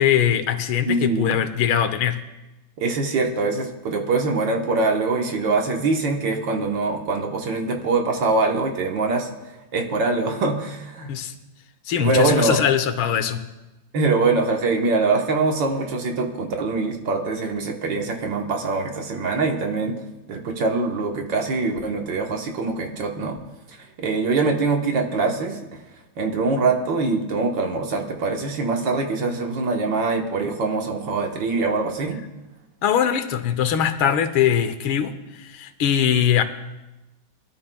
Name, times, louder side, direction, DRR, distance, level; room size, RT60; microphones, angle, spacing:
voice 1, 0.0-2.2 11.1-11.4 11.9-13.4 32.8-36.4, left 9 dB, 90° left, 10 dB, 1.7 m, -21 dB
voice 2, 0.8-1.4 2.8-9.3 9.7-11.1 12.0-12.6 13.9-20.0 20.3-23.4 24.0-25.8 26.2-32.2, right 3 dB, 65° right, 3 dB, 1.8 m, -23 dB
22.5 x 13.0 x 2.3 m, 1.0 s
omnidirectional pair, 2.2 m